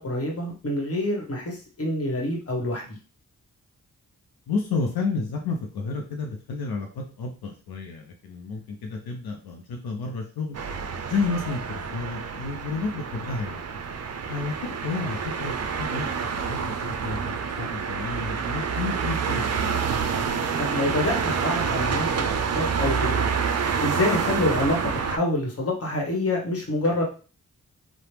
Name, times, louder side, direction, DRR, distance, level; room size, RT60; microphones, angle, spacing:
voice 1, 0.0-3.0 20.6-23.3 23.8-24.8 25.0-27.0, left 1 dB, 40° left, 0 dB, 1.2 m, -27 dB
voice 2, 4.5-10.6 11.1-13.6 14.3-16.1 16.5-19.7, left 4 dB, 85° left, 2 dB, 0.5 m, -31 dB
sound 1, 10.5-25.2, right 6 dB, 45° right, 0.4 m, -28 dB
2.9 x 2.1 x 3.2 m, 0.36 s
cardioid pair, 55°, 36 cm